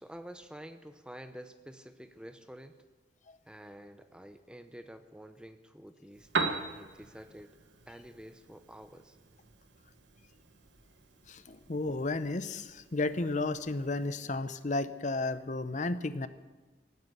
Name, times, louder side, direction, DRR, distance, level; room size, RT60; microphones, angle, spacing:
voice 1, 0.0-2.8 3.5-7.6 7.9-9.2, equal, 5° right, 10 dB, 0.7 m, -49 dB
Piano, 6.1-14.1, right 4 dB, 80° right, 1.2 m, -41 dB
voice 2, 11.3-16.3, left 2 dB, 40° left, 13 dB, 0.7 m, -33 dB
17.5 x 9.5 x 7.9 m, 1.3 s
head